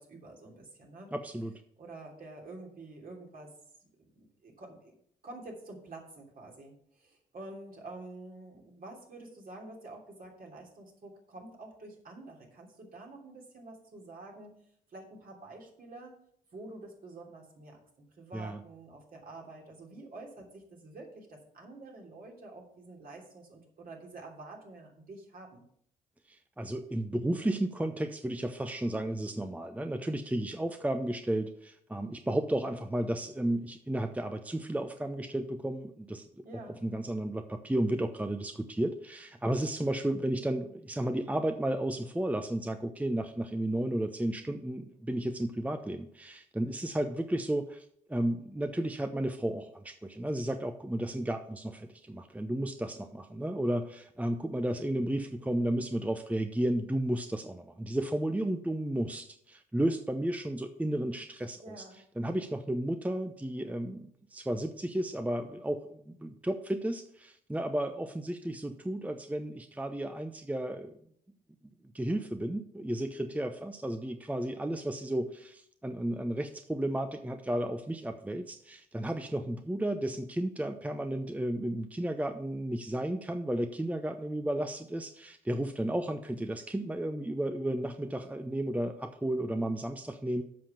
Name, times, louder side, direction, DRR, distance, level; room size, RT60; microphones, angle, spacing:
voice 1, 0.0-1.1 1.8-3.5 4.1-4.9 5.2-14.5 14.9-16.2 16.5-25.6 36.4-36.8 61.6-62.0, right 2 dB, 55° right, -1 dB, 3.1 m, -48 dB
voice 2, 1.1-1.6 18.3-18.6 26.3-36.4 36.8-61.8 62.2-70.9 71.9-90.4, right 1 dB, 10° right, 7 dB, 0.8 m, -33 dB
7.7 x 5.7 x 6.9 m, 0.68 s
hypercardioid pair, 50°, 18 cm